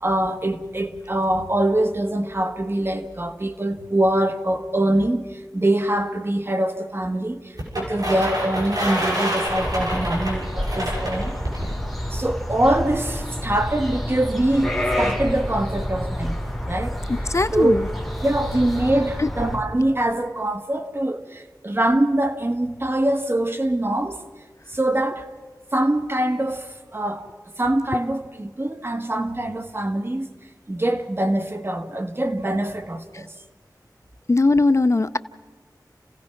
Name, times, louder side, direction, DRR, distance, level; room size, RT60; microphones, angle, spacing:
voice 1, 0.0-5.2 5.5-7.4 7.8-11.4 12.1-16.4 16.7-17.0 17.5-17.8 18.2-24.2 24.7-25.3 25.7-27.3 27.6-30.3 30.7-33.3, right 1 dB, 35° right, 1.5 m, -23 dB
sound 1, 7.6-11.7, equal, 65° right, 6.6 m, -27 dB
sound 2, 9.5-19.6, equal, ahead, 4.1 m, -29 dB
voice 2, 17.1-17.9 19.2-19.3 34.3-35.2, left 3 dB, 40° left, 0.5 m, -19 dB
30.0 x 16.5 x 5.8 m
wide cardioid pair, 75°, 7 cm